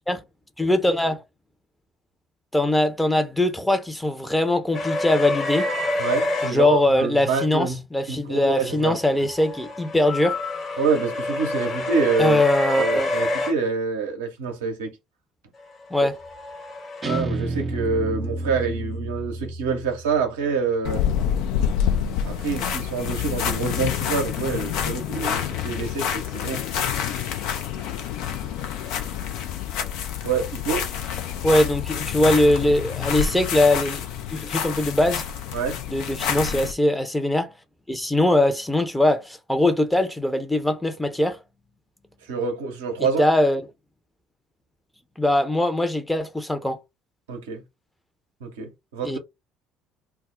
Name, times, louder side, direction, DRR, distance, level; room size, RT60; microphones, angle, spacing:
voice 1, 0.6-1.2 2.5-5.7 6.4-10.4 12.2-13.1 15.9-16.2 31.4-34.0 34.3-35.2 35.9-37.5 37.9-41.4 43.2-43.6 45.2-46.8 49.0-49.2, left 1 dB, 5° left, 0.7 m, -21 dB
sound 1, 4.7-6.5 8.9-13.5 15.9-17.2, left 2 dB, 40° left, 1.1 m, -27 dB
voice 2, 6.0-7.8 8.1-9.2 10.8-12.4 12.8-15.0 17.0-21.0 22.2-26.6 30.2-30.9 35.5-35.8 42.3-43.3 47.3-47.6 48.4-49.2, right 5 dB, 75° right, 0.7 m, -26 dB
Guitar, 17.0-20.2, right 2 dB, 30° right, 0.5 m, -30 dB
sound 2, 20.8-36.7, left 9 dB, 65° left, 0.5 m, -27 dB
2.3 x 2.0 x 3.7 m
figure-of-eight pair, 55°, 0 cm